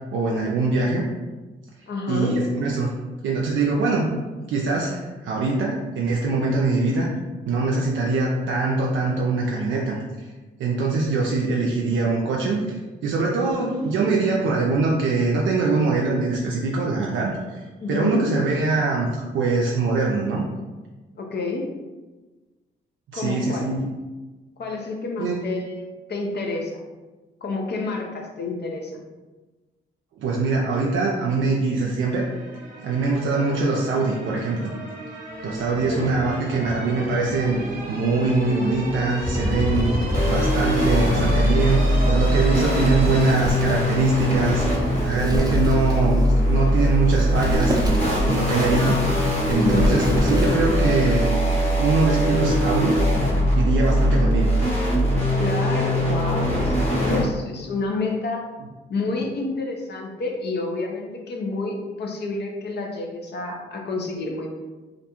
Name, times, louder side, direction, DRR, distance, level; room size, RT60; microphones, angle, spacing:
voice 1, 0.1-1.1 2.1-2.9 3.2-4.1 4.5-7.1 7.5-10.0 10.6-19.1 19.3-20.4 23.1-23.9 25.2-25.4 30.2-32.3 32.8-34.7 35.4-37.6 37.9-47.8 48.2-49.2 49.5-51.3 51.8-53.0 53.5-54.6, right 3 dB, 70° right, -3 dB, 0.4 m, -23 dB
voice 2, 1.9-2.3 17.8-18.2 21.2-21.7 23.1-23.7 24.6-26.8 27.4-29.1 35.9-36.1 49.5-49.9 55.4-58.5 58.9-64.6, left 3 dB, 55° left, 1 dB, 0.6 m, -29 dB
sound 1, 32.1-43.3, right 1 dB, 45° right, 1.0 m, -33 dB
sound 2, 39.3-57.2, equal, 30° left, 1.0 m, -21 dB
Wind, 42.2-50.9, equal, 20° right, 0.5 m, -30 dB
2.5 x 2.2 x 2.9 m, 1.2 s
supercardioid pair, 50°, 21 cm